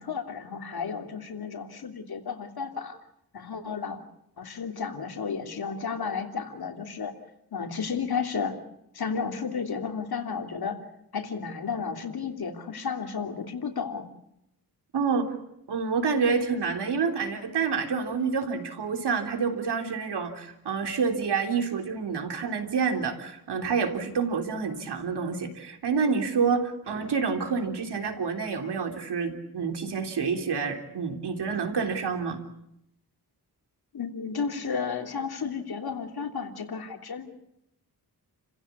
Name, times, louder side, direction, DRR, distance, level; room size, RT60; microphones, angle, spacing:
voice 1, 0.0-3.0 3.3-4.0 4.4-7.1 7.5-8.6 8.9-10.8 11.1-14.0 33.9-37.3, left 6 dB, 65° left, 4 dB, 3.2 m, -32 dB
voice 2, 14.9-15.3 15.7-32.4, right 5 dB, 80° right, 4 dB, 3.6 m, -28 dB
30.0 x 15.5 x 8.5 m, 0.80 s
wide cardioid pair, 105°, 40 cm